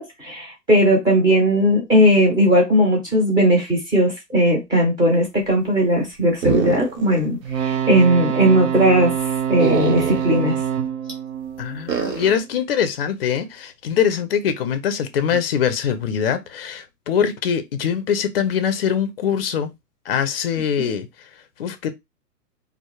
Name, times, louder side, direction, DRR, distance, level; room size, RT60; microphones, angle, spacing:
voice 1, 0.0-10.6 20.8-20.9, equal, 10° right, 0.6 m, -18 dB
sound 1, 6.4-7.2 7.6-7.7 9.6-10.4 11.9-12.4, right 7 dB, 80° right, 0.9 m, -24 dB
sound 2, 7.4-12.5 15.3-15.4, right 8 dB, 55° right, 0.5 m, -25 dB
voice 2, 11.6-19.7 20.1-21.3 21.6-21.9, left 8 dB, 40° left, 0.4 m, -23 dB
2.2 x 2.0 x 2.9 m
hypercardioid pair, 135°, 48 cm